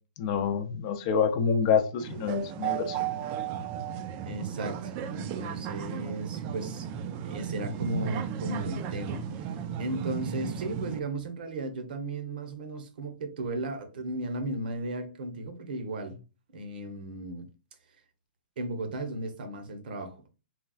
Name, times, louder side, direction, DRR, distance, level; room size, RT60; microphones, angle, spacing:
voice 1, 0.2-3.0, left 6 dB, 40° left, 0.5 m, -27 dB
sound 1, 2.0-11.0, right 8 dB, 30° right, 0.3 m, -34 dB
voice 2, 4.2-6.9 7.2-9.2 9.8-16.2 16.5-17.5 18.6-20.3, right 2 dB, 65° right, 0.9 m, -35 dB
4.0 x 2.3 x 2.3 m
hypercardioid pair, 140°, 5 cm